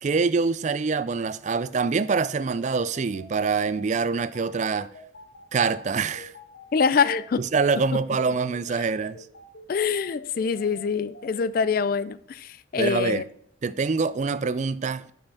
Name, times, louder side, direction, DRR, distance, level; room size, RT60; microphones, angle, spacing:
voice 1, 0.0-4.9 5.5-6.3 7.4-9.2 12.8-13.2 13.6-15.1, right 4 dB, 35° right, 0.3 m, -25 dB
sound 1, 1.9-11.6, left 2 dB, 65° left, 1.4 m, -46 dB
voice 2, 6.7-7.4 9.7-13.2, left 5 dB, 45° left, 0.3 m, -24 dB
6.9 x 5.7 x 5.4 m
head